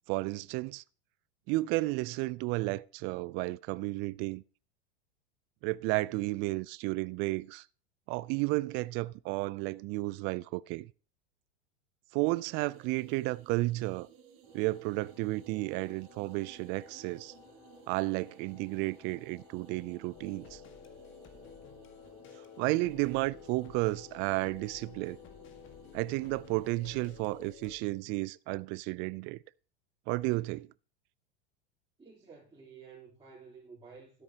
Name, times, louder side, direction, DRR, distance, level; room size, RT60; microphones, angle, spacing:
voice 1, 0.1-0.8 1.5-4.4 5.6-7.6 8.1-10.9 12.1-14.1 14.5-17.3 17.9-20.6 22.6-25.2 25.9-29.4 30.1-30.7, right 21 dB, 35° right, 0.4 m, -32 dB
sound 1, 12.4-27.5, right 8 dB, 55° right, 2.2 m, -59 dB
sound 2, 14.4-28.0, left 4 dB, 20° left, 4.5 m, -59 dB
sound 3, 20.1-27.8, left 7 dB, 35° left, 1.7 m, -52 dB
voice 2, 32.0-34.2, right 5 dB, 15° right, 3.3 m, -52 dB
12.5 x 10.0 x 2.8 m
hypercardioid pair, 95°, 33 cm